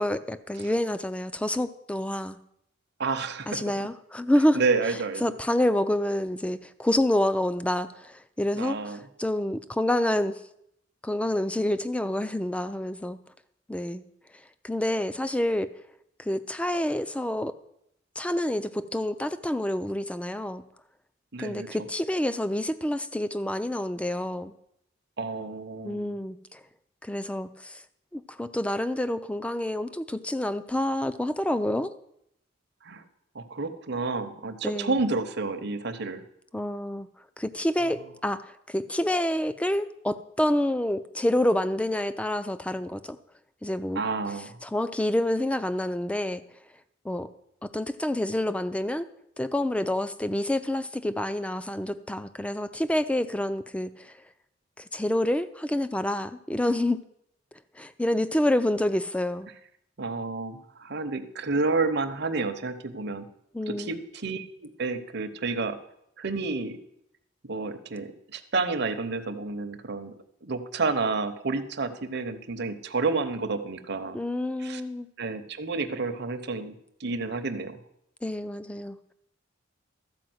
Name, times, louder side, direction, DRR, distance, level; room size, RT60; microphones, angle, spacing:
voice 1, 0.0-2.4 3.5-4.6 5.2-10.4 11.0-13.2 13.7-14.0 14.6-15.7 16.2-17.6 18.2-20.6 21.4-24.5 25.8-26.6 27.0-27.8 28.1-31.9 34.6-35.0 36.5-37.1 37.4-43.2 43.6-44.0 44.6-46.4 47.0-47.3 47.6-49.1 49.4-54.2 54.8-57.0 57.8-59.5 63.5-63.9 74.1-75.1 78.2-79.1, left 1 dB, 5° left, 13 dB, 0.4 m, -28 dB
voice 2, 3.0-3.6 4.5-5.2 8.5-9.1 21.3-21.7 25.2-26.1 32.8-33.0 33.3-36.2 43.9-44.6 60.0-63.2 63.7-65.8 66.2-66.8 67.4-70.1 70.4-74.2 74.6-74.8 75.2-76.7 77.0-77.8, right 3 dB, 55° right, 9 dB, 0.8 m, -30 dB
13.0 x 4.9 x 7.8 m, 0.76 s
head